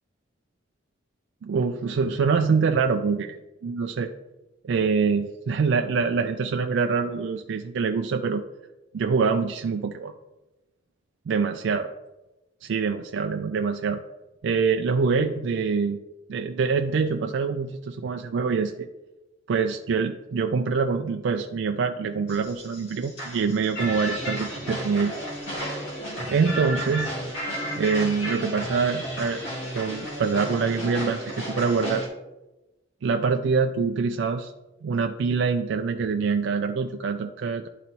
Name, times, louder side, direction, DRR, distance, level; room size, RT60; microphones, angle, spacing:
voice 1, 1.4-3.4 3.6-4.1 4.6-8.4 8.9-10.1 11.3-11.9 12.6-14.0 14.4-16.0 16.3-18.9 19.5-25.1 26.3-27.2 27.8-29.4 29.7-32.0 33.0-34.5 34.8-37.7, right 5 dB, 70° right, 5 dB, 0.4 m, -25 dB
sound 1, 22.3-32.1, equal, 80° left, 2.2 m, -33 dB
11.0 x 3.9 x 2.9 m, 1.0 s
head